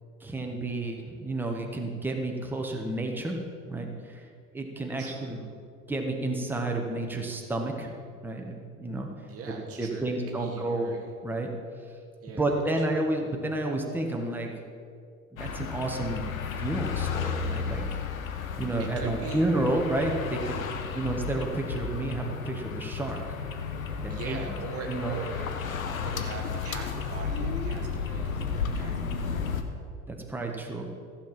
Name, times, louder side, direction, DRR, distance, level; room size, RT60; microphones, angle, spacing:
voice 1, 0.2-3.4 3.7-4.3 4.5-5.4 5.9-7.9 8.2-9.1 9.8-10.9 11.2-11.5 12.4-14.5 15.3-16.2 16.6-18.0 18.6-20.6 20.9-23.2 24.0-24.4 24.9-25.2 30.1-30.9, right 2 dB, 5° right, 1 dB, 1.5 m, -30 dB
voice 2, 5.0-5.6 9.3-11.1 12.2-12.9 18.8-19.5 20.7-21.1 24.1-25.5 26.0-29.5, right 4 dB, 35° right, 2 dB, 1.2 m, -42 dB
sound 1, 15.4-29.6, left 5 dB, 75° left, 1.0 m, -33 dB
14.5 x 7.2 x 6.0 m, 2.3 s
figure-of-eight pair, 70°, 41 cm